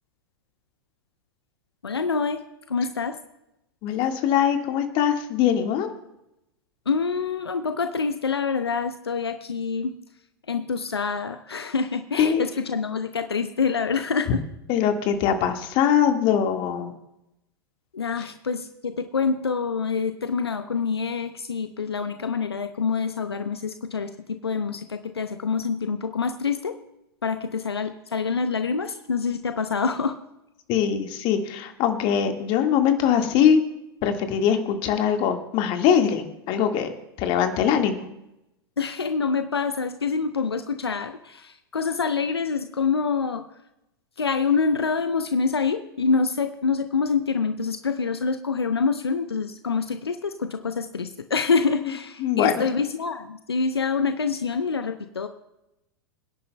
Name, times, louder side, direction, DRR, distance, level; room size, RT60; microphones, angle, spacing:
voice 1, 1.8-3.2 6.9-10.0 10.5-14.4 17.9-26.7 27.2-30.2 38.8-43.4 44.2-55.3, left 5 dB, 80° left, 8 dB, 0.8 m, -26 dB
voice 2, 3.8-5.9 12.2-12.4 14.7-16.9 18.2-18.3 30.7-33.6 34.0-36.9 37.2-38.0 52.2-52.6, left 8 dB, 40° left, 5 dB, 1.7 m, -22 dB
26.5 x 10.5 x 2.2 m, 0.88 s
figure-of-eight pair, 95°, 13 cm